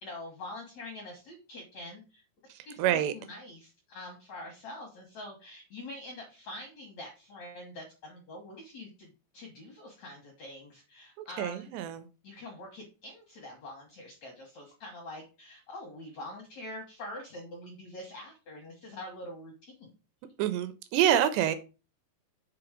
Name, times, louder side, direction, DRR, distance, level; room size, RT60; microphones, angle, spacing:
voice 1, 0.0-2.2 2.6-11.7 12.2-19.9, left 1 dB, 70° left, 1.7 m, -45 dB
voice 2, 2.8-3.1 11.2-12.1 20.4-21.6, right 10 dB, 80° right, 2.6 m, -27 dB
6.9 x 4.1 x 5.0 m
omnidirectional pair, 5.2 m